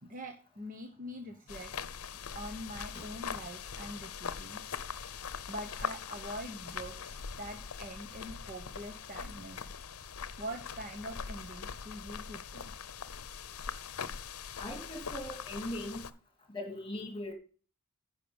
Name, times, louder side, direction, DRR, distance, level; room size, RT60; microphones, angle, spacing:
voice 1, 0.0-1.7 2.3-4.8 5.5-9.6 10.4-12.7, equal, 40° right, 4 dB, 1.2 m, -44 dB
sound 1, 1.5-16.1, left 6 dB, 85° left, 0.7 m, -42 dB
voice 2, 14.6-16.0 16.5-17.3, left 1 dB, 25° left, 3 dB, 2.6 m, -40 dB
10.0 x 5.8 x 7.1 m, 0.40 s
head